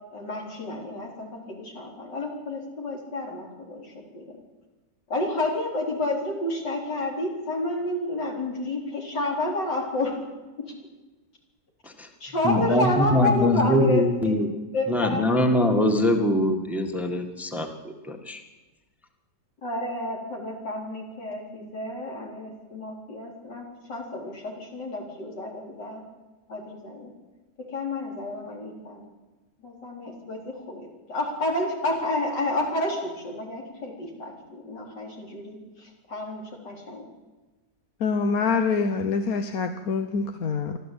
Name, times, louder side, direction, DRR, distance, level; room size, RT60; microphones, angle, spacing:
voice 1, 0.1-4.3 5.1-10.2 10.6-10.7 12.2-14.3 14.7-15.3 19.6-26.0 26.5-27.1 27.7-29.0 29.6-37.0, left 2 dB, 80° left, 0 dB, 4.8 m, -30 dB
voice 2, 12.4-14.5 14.9-18.4, left 1 dB, ahead, 4 dB, 1.8 m, -23 dB
voice 3, 38.0-40.8, left 5 dB, 60° left, 7 dB, 1.3 m, -25 dB
25.0 x 13.5 x 8.7 m, 1.2 s
omnidirectional pair, 1.9 m